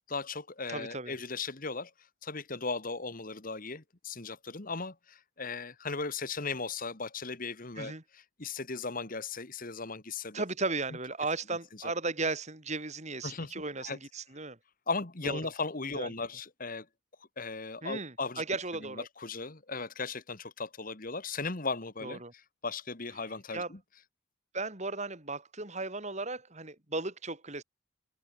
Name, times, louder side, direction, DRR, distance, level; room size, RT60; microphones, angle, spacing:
voice 1, 0.1-1.9 2.2-10.4 11.8-11.9 13.2-13.5 13.8-14.0 14.9-16.9 17.4-18.4 18.8-22.2 22.6-23.8, left 4 dB, 40° left, 1.6 m, -37 dB
voice 2, 0.7-1.2 7.8-8.0 10.3-14.6 15.2-15.4 15.9-16.1 17.8-19.1 22.0-22.3 23.5-23.7 24.5-27.6, right 3 dB, 35° right, 3.2 m, -36 dB
open air
head